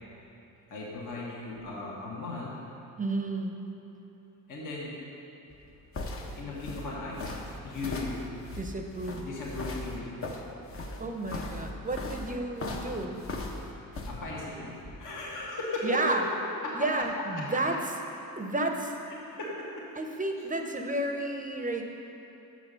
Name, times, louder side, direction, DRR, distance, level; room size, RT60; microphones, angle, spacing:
voice 1, 0.7-2.5 4.5-5.0 6.4-7.3 7.6-8.2 9.1-10.2 14.1-15.9 16.6-16.8 19.1-19.9, left 3 dB, 60° left, -5 dB, 1.6 m, -37 dB
voice 2, 3.0-3.5 8.5-9.3 11.0-13.3 15.8-16.2 16.7-17.8 18.4-18.9 19.9-21.8, right 2 dB, 20° right, 4 dB, 0.7 m, -31 dB
sound 1, 5.5-14.1, left 2 dB, 40° left, 0.9 m, -38 dB
6.3 x 6.0 x 6.9 m, 3.0 s
cardioid pair, 95°, 36 cm